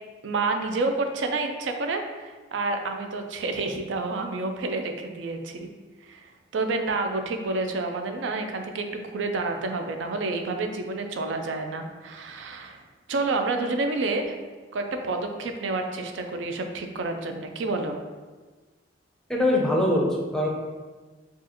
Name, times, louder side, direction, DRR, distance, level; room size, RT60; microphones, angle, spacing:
voice 1, 0.2-5.7 6.0-12.8 13.1-14.4 14.7-18.0, right 3 dB, 80° right, 5 dB, 0.4 m, -29 dB
voice 2, 19.3-20.5, left 1 dB, 5° left, -2 dB, 0.5 m, -22 dB
4.6 x 2.4 x 2.9 m, 1.3 s
head